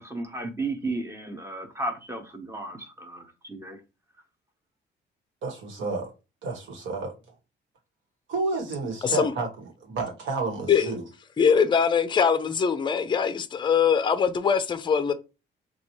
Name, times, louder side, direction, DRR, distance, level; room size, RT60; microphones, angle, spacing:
voice 1, 0.0-3.8, right 2 dB, 15° right, 0.8 m, -34 dB
voice 2, 5.4-6.1 6.4-7.1 8.3-9.5 9.8-11.0, right 3 dB, 80° right, 1.3 m, -30 dB
voice 3, 11.4-15.1, left 6 dB, 25° left, 0.4 m, -22 dB
4.1 x 2.3 x 3.0 m
cardioid pair, 90°, 20 cm